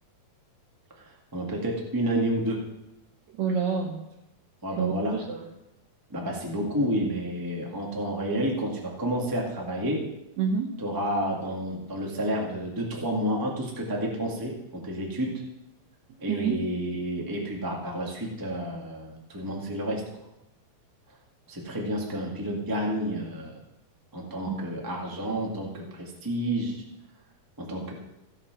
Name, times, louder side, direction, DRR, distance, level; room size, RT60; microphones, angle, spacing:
voice 1, 0.9-2.6 4.6-5.2 6.1-10.0 10.8-15.3 16.2-20.0 21.5-23.6 24.1-26.8 27.6-27.9, right 1 dB, 15° right, -1 dB, 0.8 m, -30 dB
voice 2, 3.3-4.1 4.8-5.5 10.4-10.8 16.3-16.6 24.4-24.6, right 6 dB, 70° right, 2 dB, 1.8 m, -28 dB
15.0 x 5.8 x 5.9 m, 0.93 s
omnidirectional pair, 4.0 m